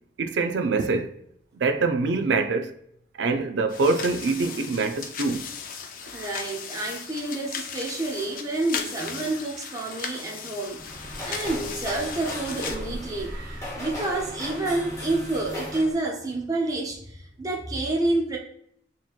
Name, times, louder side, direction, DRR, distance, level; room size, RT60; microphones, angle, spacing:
voice 1, 0.2-1.1 1.6-2.7 3.2-5.5 6.2-6.3, right 3 dB, 80° right, 0.4 m, -24 dB
sound 1, 3.7-12.8, left 6 dB, 50° left, 0.4 m, -37 dB
voice 2, 6.1-13.4 13.7-18.4, right 2 dB, 20° right, 0.5 m, -29 dB
sound 2, 10.7-16.0, left 1 dB, 20° left, 0.9 m, -36 dB
4.3 x 2.9 x 2.4 m
head